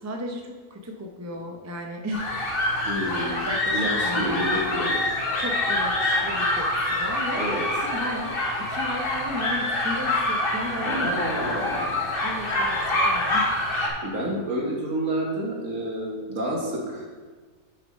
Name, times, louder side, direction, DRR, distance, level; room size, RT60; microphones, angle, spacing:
voice 1, 0.0-2.3 3.4-4.9 5.4-7.5 7.8-11.1 12.2-13.5, equal, 25° right, 2 dB, 0.3 m, -35 dB
sound 1, 2.1-13.9, left 1 dB, 40° left, 1.3 m, -26 dB
voice 2, 2.9-3.4 3.7-4.9 7.4-7.6 10.8-12.0 14.0-17.1, right 1 dB, 60° right, -2 dB, 1.9 m, -29 dB
6.5 x 6.3 x 5.4 m, 1.4 s
omnidirectional pair, 1.6 m